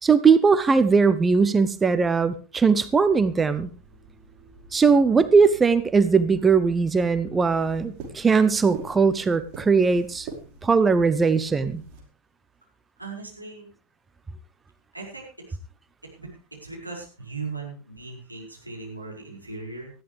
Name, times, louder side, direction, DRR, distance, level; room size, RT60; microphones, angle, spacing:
voice 1, 0.0-3.7 4.7-10.3 10.6-11.8, right 5 dB, 15° right, 13 dB, 0.8 m, -20 dB
sound 1, 2.8-12.0, right 4 dB, 40° right, 4.8 m, -45 dB
voice 2, 13.0-13.7 14.9-15.6 16.2-16.3 16.6-19.9, right 4 dB, 85° right, -2 dB, 6.0 m, -38 dB
19.0 x 14.0 x 3.4 m, 0.35 s
figure-of-eight pair, 90°, 0 cm